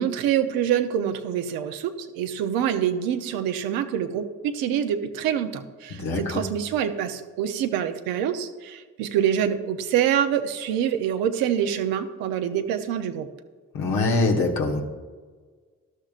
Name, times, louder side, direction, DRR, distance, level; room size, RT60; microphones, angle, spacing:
voice 1, 0.0-13.3, right 9 dB, 90° right, 7 dB, 0.7 m, -26 dB
voice 2, 5.9-6.4 13.7-14.8, left 3 dB, 85° left, 1 dB, 1.6 m, -23 dB
13.0 x 12.0 x 2.5 m, 1.5 s
supercardioid pair, 50°, 34 cm